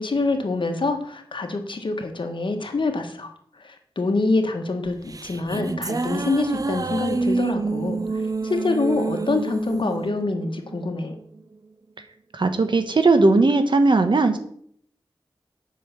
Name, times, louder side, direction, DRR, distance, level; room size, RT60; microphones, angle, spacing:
voice 1, 0.0-3.3 4.0-8.0 8.4-11.1, left 3 dB, 65° left, 5 dB, 1.5 m, -25 dB
sound 1, 4.9-11.4, right 3 dB, 40° right, 0.5 m, -28 dB
voice 2, 12.3-14.4, right 3 dB, 60° right, 8 dB, 1.2 m, -18 dB
8.4 x 5.5 x 7.1 m, 0.64 s
wide cardioid pair, 85°, 9 cm